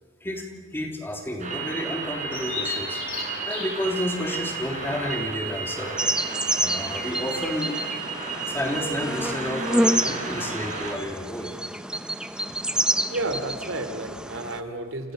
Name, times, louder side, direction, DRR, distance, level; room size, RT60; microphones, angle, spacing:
voice 1, 0.7-3.0 3.4-6.0 6.6-7.8 8.5-11.5, equal, 10° left, 2 dB, 3.2 m, -30 dB
sound 1, 1.4-10.9, right 4 dB, 35° right, 5.9 m, -33 dB
Bird vocalization bird call bird song, 2.3-8.0, left 6 dB, 85° left, 6.4 m, -39 dB
sound 2, 6.0-14.6, right 1 dB, 5° right, 0.7 m, -28 dB
voice 2, 13.1-15.1, right 2 dB, 75° right, 8 dB, 3.1 m, -31 dB
29.0 x 28.0 x 6.6 m, 1.5 s
head